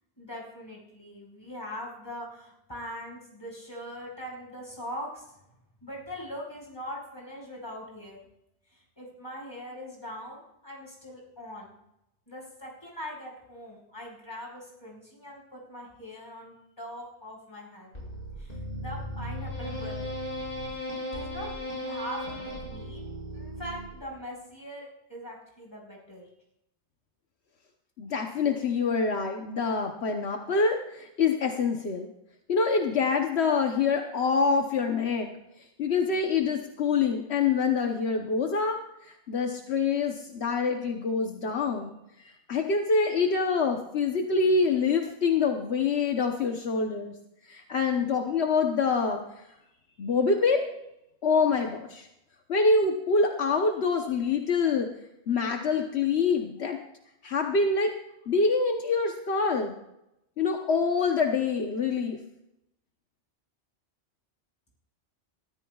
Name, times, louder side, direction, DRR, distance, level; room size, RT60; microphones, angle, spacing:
voice 1, 0.2-5.4 5.8-8.2 8.7-11.7 12.3-17.9 18.4-20.1 20.9-21.5 21.7-23.0 23.3-26.3, equal, 20° left, -3 dB, 5.2 m, -41 dB
sound 1, 18.0-24.2, equal, 55° left, 6.5 m, -36 dB
voice 2, 28.0-32.1 32.5-35.3 35.6-47.2 47.4-49.4 50.0-50.7 51.2-52.1 52.5-54.9 55.3-56.8 57.2-57.9 58.3-59.7 60.4-62.2, left 4 dB, 70° left, 3 dB, 1.2 m, -26 dB
22.0 x 14.0 x 2.4 m, 0.85 s
omnidirectional pair, 1.1 m